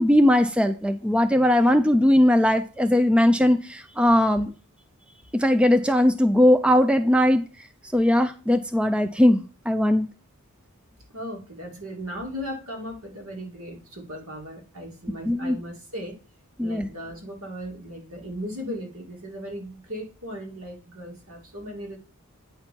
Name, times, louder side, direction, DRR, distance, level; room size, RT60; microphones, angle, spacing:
voice 1, 0.0-4.5 5.3-7.4 7.9-10.1 15.3-15.6 16.6-16.9, left 1 dB, 5° right, 8 dB, 0.4 m, -19 dB
voice 2, 11.1-16.2 16.6-22.0, equal, 70° right, 0 dB, 2.5 m, -37 dB
8.9 x 4.4 x 5.3 m, 0.36 s
head